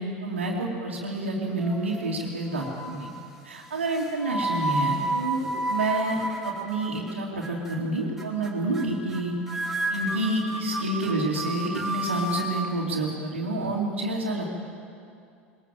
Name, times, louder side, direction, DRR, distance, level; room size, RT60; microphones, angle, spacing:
voice 1, 0.0-3.1 3.4-6.2 6.4-9.3 9.9-14.5, right 2 dB, 85° right, -7 dB, 2.8 m, -28 dB
sound 1, 1.6-2.2 2.5-3.1 3.8-7.1 7.4-7.8 8.2-8.5 8.7-9.2 9.5-12.5, right 2 dB, 5° right, 3.9 m, -31 dB
21.5 x 21.0 x 7.7 m, 2.5 s
hypercardioid pair, 80°, 6 cm